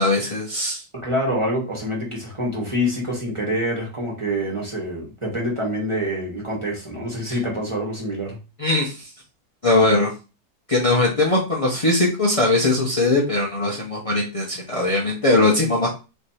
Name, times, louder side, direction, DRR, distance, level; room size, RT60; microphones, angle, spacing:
voice 1, 0.0-0.8 8.6-9.1 9.6-10.1 10.7-15.9, left 2 dB, 60° left, -3 dB, 0.3 m, -20 dB
voice 2, 1.0-8.4, equal, 20° right, -3 dB, 1.3 m, -26 dB
3.4 x 3.2 x 4.2 m, 0.31 s
omnidirectional pair, 1.9 m